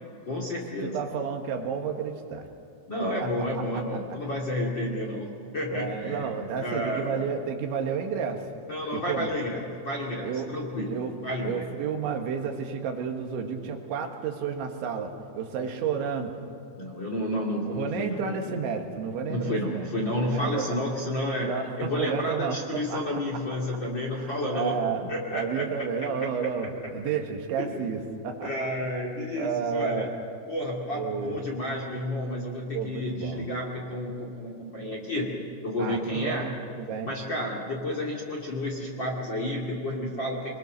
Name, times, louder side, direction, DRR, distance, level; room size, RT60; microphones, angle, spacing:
voice 1, 0.3-1.0 2.9-6.3 6.6-7.3 8.7-11.0 11.2-11.6 16.8-18.6 19.3-21.5 21.8-24.7 25.1-25.6 27.6-27.8 28.4-30.1 30.5-35.3 35.6-36.5 37.0-40.6, left 1 dB, 35° left, -1 dB, 2.1 m, -31 dB
voice 2, 0.8-2.5 3.2-3.3 3.7-3.8 5.7-8.5 8.9-9.4 10.2-10.5 10.9-11.1 11.4-16.4 17.7-19.9 20.3-20.8 21.4-23.4 24.1-28.5 29.4-30.1 30.9-31.4 32.7-33.5 35.8-37.1, right 6 dB, 80° right, 4 dB, 3.9 m, -31 dB
25.0 x 22.0 x 6.5 m, 2.4 s
omnidirectional pair, 5.3 m